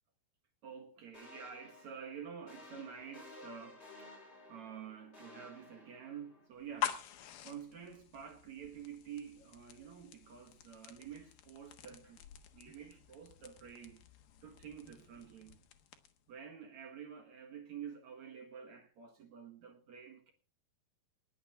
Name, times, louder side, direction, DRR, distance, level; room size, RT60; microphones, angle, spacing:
voice 1, 0.6-4.2 4.5-7.0 7.4-12.2 12.5-14.0 14.4-15.6 16.3-20.3, right 7 dB, 55° right, 2.3 m, -49 dB
sound 1, 1.1-6.5, left 2 dB, 15° left, 5.7 m, -55 dB
sound 2, 6.6-16.3, left 11 dB, 65° left, 2.7 m, -46 dB
19.5 x 7.1 x 6.6 m
omnidirectional pair, 4.8 m